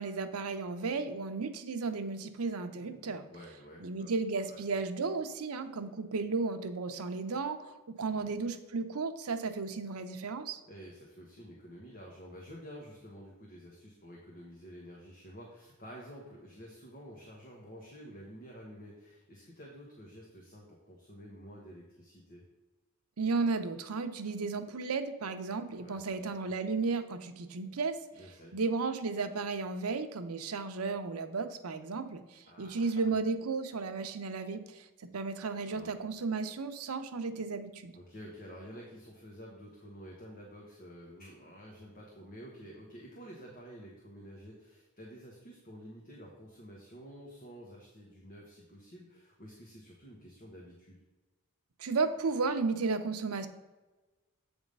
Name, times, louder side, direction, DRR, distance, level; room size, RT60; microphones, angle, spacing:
voice 1, 0.0-3.2 3.8-10.6 23.2-28.0 28.5-38.0 51.8-53.5, right 4 dB, 85° right, 8 dB, 0.7 m, -34 dB
voice 2, 2.7-4.1 4.5-4.6 8.1-8.3 10.7-22.4 25.8-26.5 28.1-28.5 32.5-33.0 35.6-36.0 37.9-51.0, equal, 40° left, -2 dB, 1.2 m, -50 dB
8.1 x 3.5 x 5.3 m, 1.2 s
head